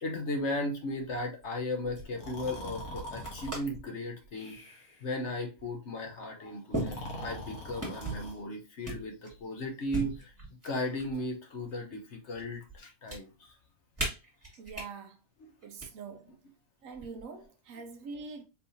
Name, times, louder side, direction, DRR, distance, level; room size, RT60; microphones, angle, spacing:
voice 1, 0.0-4.6 5.0-10.3 10.6-13.6, left 1 dB, 55° left, 1.1 m, -36 dB
sound 1, 1.1-1.5 1.8-2.1 3.0-3.8 4.2-4.6 5.6-5.7 6.7-7.5 7.8-8.3 8.8-9.4 9.9-11.3 11.6-12.4 12.7-13.2 14.0-14.9 15.6-15.9 16.9-17.4, right 2 dB, 10° right, 2.2 m, -38 dB
Breathing, 2.1-3.6 4.4-5.0 6.7-8.4, left 1 dB, 85° left, 1.7 m, -43 dB
voice 2, 14.6-15.2 15.6-16.3 16.8-18.4, right 4 dB, 70° right, 1.0 m, -44 dB
4.5 x 3.5 x 2.7 m
omnidirectional pair, 1.5 m